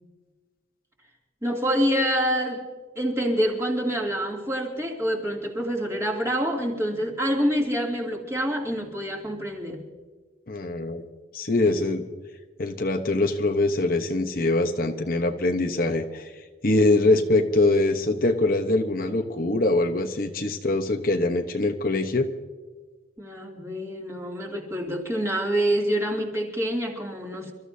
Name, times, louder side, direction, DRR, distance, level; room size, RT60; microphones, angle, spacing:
voice 1, 1.4-2.6 3.0-9.8 23.2-27.5, equal, 15° right, -1 dB, 2.6 m, -26 dB
voice 2, 10.5-11.0 11.3-12.0 12.6-16.3 16.6-22.3, left 2 dB, 50° left, 5 dB, 1.0 m, -23 dB
29.0 x 14.0 x 2.8 m, 1.3 s
head